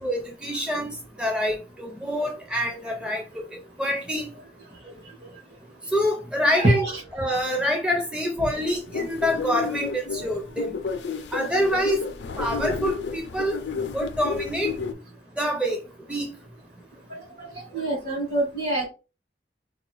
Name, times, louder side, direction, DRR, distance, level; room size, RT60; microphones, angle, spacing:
voice 1, 0.0-3.4 3.8-4.3 5.9-6.9 7.2-10.8 11.3-12.0 12.4-13.6 13.9-14.8 15.4-15.8 16.1-16.3, equal, 5° right, 0.4 m, -26 dB
voice 2, 6.6-7.0 17.7-18.9, right 1 dB, 60° right, 1.9 m, -24 dB
sound 1, 8.6-14.9, left 5 dB, 80° left, 0.5 m, -31 dB
4.0 x 2.3 x 3.0 m
head